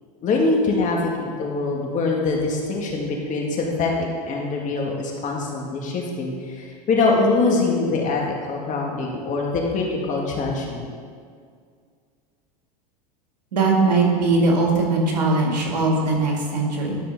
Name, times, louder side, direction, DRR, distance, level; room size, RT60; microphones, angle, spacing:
voice 1, 0.2-8.2 8.5-10.9, left 3 dB, 40° left, -1 dB, 1.9 m, -23 dB
voice 2, 13.5-17.0, right 3 dB, 90° right, -1 dB, 2.1 m, -20 dB
12.0 x 4.3 x 5.4 m, 2.1 s
hypercardioid pair, 100°, 20 cm